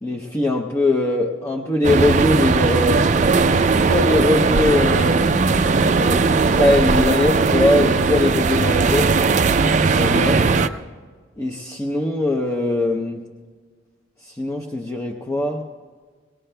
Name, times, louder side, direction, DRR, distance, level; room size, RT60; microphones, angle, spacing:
voice 1, 0.0-3.1 3.7-5.3 5.9-9.2 9.9-10.4 11.4-13.3 14.2-15.6, left 2 dB, 15° left, -2 dB, 0.6 m, -21 dB
sound 1, 1.8-10.7, right 4 dB, 40° right, 0.4 m, -18 dB
20.5 x 19.0 x 2.2 m, 1.5 s
head